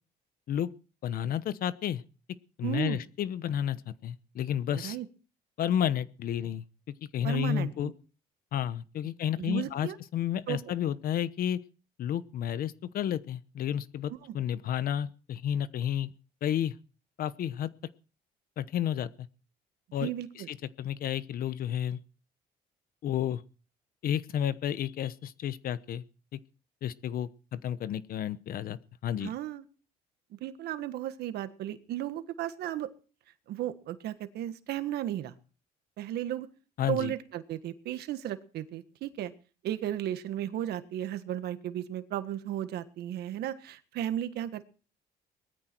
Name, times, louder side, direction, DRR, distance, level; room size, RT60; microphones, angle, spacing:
voice 1, 1.0-2.0 2.6-5.0 5.6-6.6 7.1-7.9 8.5-11.6 12.0-16.1 16.4-16.7 17.2-17.7 18.6-19.3 19.9-20.1 20.5-22.0 23.0-23.4 24.0-26.0 26.3-26.4 26.8-29.3 36.8-37.1, left 10 dB, 60° left, 16 dB, 1.0 m, -31 dB
voice 2, 2.6-3.0 4.7-5.1 7.2-7.9 9.4-9.9 10.5-10.6 14.3-14.4 20.0-20.5 29.2-29.6 30.3-32.9 33.5-35.3 36.0-36.5 36.9-39.3 39.6-44.7, right 12 dB, 75° right, 11 dB, 1.6 m, -34 dB
19.5 x 14.0 x 4.6 m, 0.37 s
cardioid pair, 110°, 17 cm